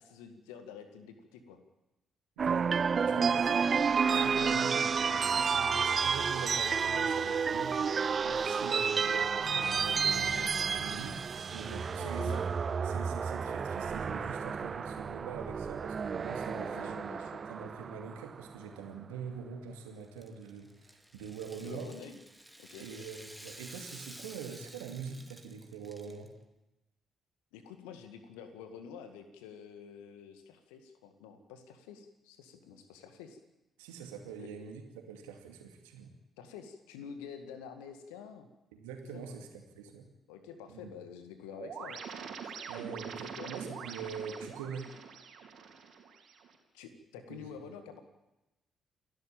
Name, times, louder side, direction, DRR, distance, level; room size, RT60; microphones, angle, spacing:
voice 1, 0.0-1.6 12.0-12.4 16.5-17.5 21.6-22.2 22.6-22.9 27.5-33.4 34.4-34.5 36.4-38.5 39.1-39.4 40.3-42.0 43.2-43.5 46.7-48.0, left 7 dB, 70° left, 8 dB, 1.9 m, -48 dB
sound 1, 2.4-18.6, right 6 dB, 45° right, 0.8 m, -31 dB
voice 2, 2.4-2.7 3.0-12.4 12.8-17.0 17.5-20.7 21.1-21.9 22.8-26.3 33.8-34.8 35.1-36.1 38.7-40.1 40.7-40.9 42.7-44.9 47.3-47.6, right 6 dB, 75° right, 4 dB, 2.4 m, -44 dB
Rattle (instrument), 20.0-26.3, right 1 dB, 5° right, 2.3 m, -52 dB
sound 2, 41.6-46.6, right 6 dB, 60° right, 3.8 m, -44 dB
28.5 x 12.0 x 9.0 m, 0.96 s
figure-of-eight pair, 40°, 0 cm